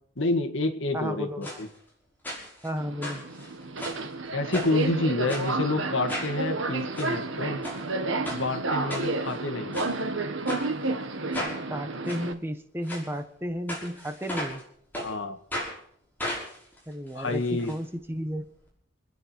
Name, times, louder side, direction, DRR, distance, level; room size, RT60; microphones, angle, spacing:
voice 1, 0.2-1.7 4.3-7.6 8.3-9.8 15.0-15.4 17.1-17.7, left 2 dB, 75° left, 6 dB, 2.0 m, -28 dB
voice 2, 0.9-1.6 2.6-3.2 11.7-14.6 16.9-18.5, equal, 10° right, 7 dB, 1.3 m, -33 dB
sound 1, 1.4-1.6 2.2-2.7 3.0-4.1 4.5-4.8 5.3-5.5 6.1-6.3 6.8-7.1 7.6-7.8 8.2-8.4 8.9-9.4 9.7-9.9 10.5-10.6 11.3-11.6 12.1-12.2 12.8-13.0 13.7-14.6 14.9-15.1 15.5-15.7 16.2-17.7 18.0-18.1 18.3-18.4, left 1 dB, 10° left, 5.9 m, -34 dB
Subway metro underground, 2.8-12.3, right 3 dB, 75° right, 1.6 m, -31 dB
28.5 x 10.0 x 4.6 m, 0.64 s
head